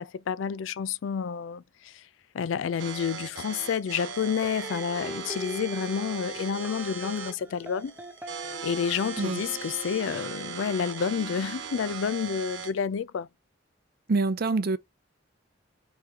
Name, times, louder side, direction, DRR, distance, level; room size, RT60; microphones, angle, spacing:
voice 1, 0.0-2.0 2.3-7.9 8.6-13.3, left 7 dB, 75° left, 0.4 m, -30 dB
sound 1, 2.8-12.8, right 6 dB, 85° right, 1.0 m, -39 dB
sound 2, 4.4-11.5, right 1 dB, 10° right, 0.9 m, -43 dB
voice 2, 14.1-14.8, right 3 dB, 55° right, 0.6 m, -25 dB
3.6 x 3.0 x 4.4 m
head